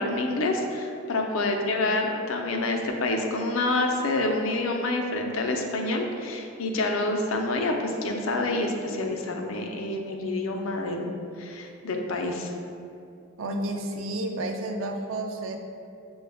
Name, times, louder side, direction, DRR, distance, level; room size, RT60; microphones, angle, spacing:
voice 1, 0.0-11.1 11.4-12.5, left 2 dB, 85° left, 2 dB, 0.5 m, -27 dB
voice 2, 13.4-15.6, right 1 dB, 80° right, 4 dB, 0.5 m, -31 dB
6.6 x 2.3 x 3.5 m, 2.6 s
head